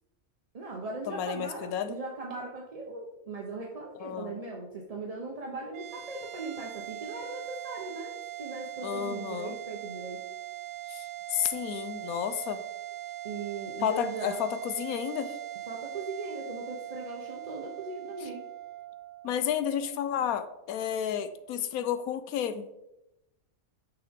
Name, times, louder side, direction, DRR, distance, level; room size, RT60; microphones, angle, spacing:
voice 1, 0.5-10.2 13.2-14.4 15.7-18.4, right 3 dB, 35° right, -1 dB, 0.7 m, -39 dB
voice 2, 1.1-2.0 4.0-4.4 8.8-9.6 10.9-12.6 13.8-15.4 18.2-18.3 19.2-22.7, left 9 dB, 85° left, 11 dB, 1.1 m, -31 dB
sound 1, 5.7-20.3, right 14 dB, 70° right, 1.0 m, -41 dB
6.4 x 5.8 x 3.6 m, 0.90 s
omnidirectional pair, 1.5 m